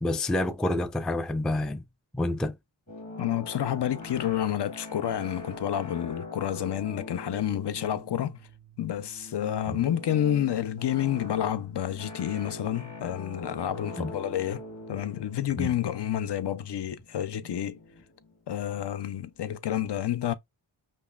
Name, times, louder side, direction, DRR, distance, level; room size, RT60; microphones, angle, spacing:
voice 1, 0.0-1.8 2.1-2.5 9.7-9.8 14.0-14.1 15.6-15.7, left 1 dB, ahead, 0.3 m, -28 dB
sound 1, 2.9-19.4, left 2 dB, 35° left, 1.6 m, -44 dB
voice 2, 3.2-8.4 8.8-14.6 14.9-17.8 18.5-20.3, left 10 dB, 55° left, 0.6 m, -29 dB
5.3 x 2.1 x 2.3 m
wide cardioid pair, 60°, 49 cm